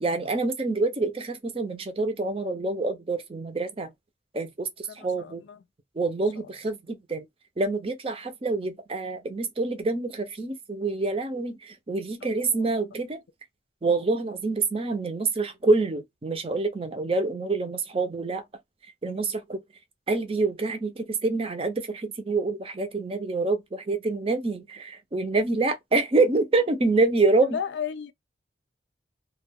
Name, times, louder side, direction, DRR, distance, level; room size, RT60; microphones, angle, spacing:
voice 1, 0.0-3.9 4.3-5.4 6.0-7.3 7.6-13.2 13.8-18.4 19.0-19.6 20.1-27.6, right 3 dB, 30° right, 0.5 m, -26 dB
voice 2, 4.9-5.6 6.4-6.5 12.2-12.7 27.4-28.1, left 8 dB, 70° left, 0.4 m, -35 dB
2.3 x 2.2 x 3.4 m
head